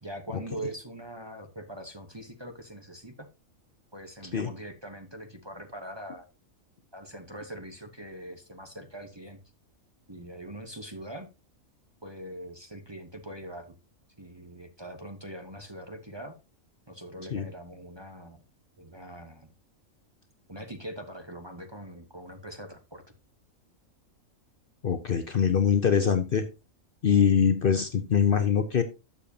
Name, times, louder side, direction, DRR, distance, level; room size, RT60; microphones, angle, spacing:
voice 1, 0.0-3.3 3.9-6.2 6.9-9.4 10.1-11.3 12.0-13.7 14.2-16.4 16.9-18.4 18.8-19.5 20.5-23.0, right 1 dB, 20° right, 5 dB, 0.9 m, -42 dB
voice 2, 24.8-26.5 27.0-28.8, left 7 dB, 50° left, 9 dB, 0.8 m, -23 dB
12.0 x 7.1 x 2.8 m, 0.28 s
omnidirectional pair, 1.4 m